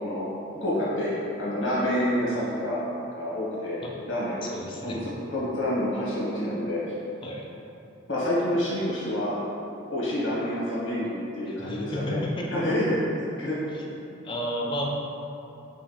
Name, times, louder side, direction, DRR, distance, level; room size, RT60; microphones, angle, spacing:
voice 1, 0.6-2.8 3.1-3.8 4.1-4.4 4.8-5.0 5.3-6.8 8.1-9.3 9.9-12.2 12.5-12.8 13.4-13.6, left 1 dB, 70° left, -8 dB, 1.5 m, -28 dB
voice 2, 4.4-5.0 7.2-7.4 11.5-12.8 14.2-14.8, equal, 25° left, -2 dB, 0.4 m, -32 dB
5.5 x 2.4 x 3.4 m, 2.8 s
head